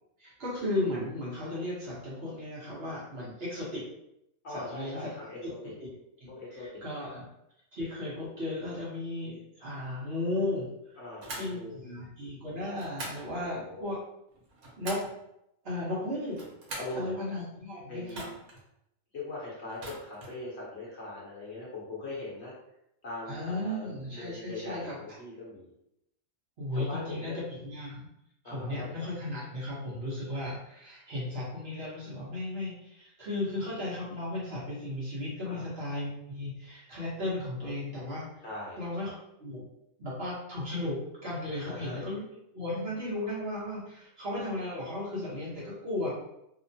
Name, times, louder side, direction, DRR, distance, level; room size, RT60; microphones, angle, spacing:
voice 1, 0.2-3.8 4.5-5.1 5.8-5.9 6.2-6.3 6.6-7.2 7.7-10.7 11.3-14.0 14.8-15.0 15.6-16.4 16.9-18.2 23.3-25.0 26.6-28.1 28.4-38.3 38.8-39.1 39.4-39.6 40.0-42.2 42.5-46.1, left 1 dB, 50° right, -7 dB, 1.0 m, -35 dB
voice 2, 4.4-5.7 6.3-6.7 11.0-11.8 13.3-13.9 16.8-17.2 17.9-18.4 19.1-22.5 23.0-25.7 26.7-27.4 28.4-29.0 35.4-35.7 38.4-39.2 41.5-42.1, left 2 dB, 55° left, -6 dB, 1.0 m, -41 dB
sound 1, 11.2-11.5 12.8-13.3 14.3-15.2 16.2-17.0 18.1-18.6 19.7-20.4, right 2 dB, 85° right, 1.2 m, -42 dB
2.9 x 2.0 x 2.7 m, 0.82 s
omnidirectional pair, 1.4 m